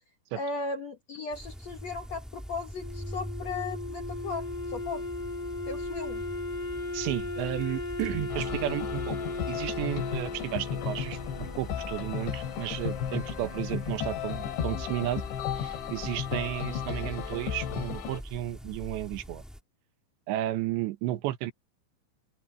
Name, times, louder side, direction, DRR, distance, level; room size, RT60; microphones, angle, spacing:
voice 1, 0.3-5.0 5.7-6.2 16.7-16.8, left 4 dB, 70° left, 1.6 m, -36 dB
sound 1, 1.3-19.6, equal, ahead, 1.0 m, -43 dB
Wind instrument woodwind instrument, 2.7-11.8, left 2 dB, 35° left, 0.8 m, -37 dB
voice 2, 6.9-9.2 9.5-15.2 15.5-19.4 20.3-21.5, right 14 dB, 80° right, 3.2 m, -33 dB
sound 2, 8.3-18.2, left 9 dB, 85° left, 4.4 m, -34 dB
open air
omnidirectional pair, 5.2 m